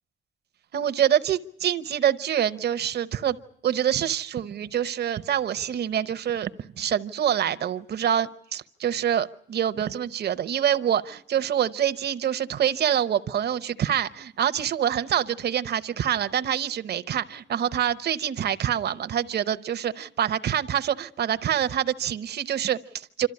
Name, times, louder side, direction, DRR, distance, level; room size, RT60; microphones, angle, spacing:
voice 1, 0.7-3.4 3.6-23.3, right 10 dB, 60° right, 12 dB, 0.8 m, -26 dB
27.0 x 13.5 x 9.8 m, 0.70 s
cardioid pair, 90°, 19 cm